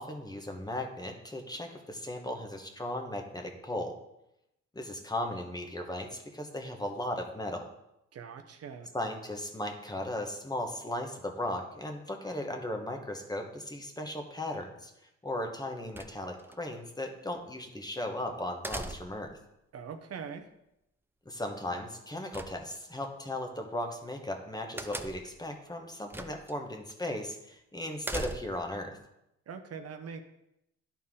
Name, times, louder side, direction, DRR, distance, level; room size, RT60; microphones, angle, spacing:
voice 1, 0.0-4.0 4.7-7.7 8.9-14.9 15.2-19.4 21.2-29.0, left 1 dB, 15° left, 3 dB, 1.2 m, -37 dB
voice 2, 8.1-8.9 19.7-20.4 29.5-30.2, right 6 dB, 55° right, 5 dB, 0.8 m, -42 dB
sound 1, 15.9-16.6 18.6-19.3 22.3-23.1 24.8-25.4 26.1-26.5 26.9-27.0 28.0-28.7, right 2 dB, 5° right, 0.5 m, -39 dB
11.0 x 4.3 x 3.7 m, 0.84 s
cardioid pair, 90°, 30 cm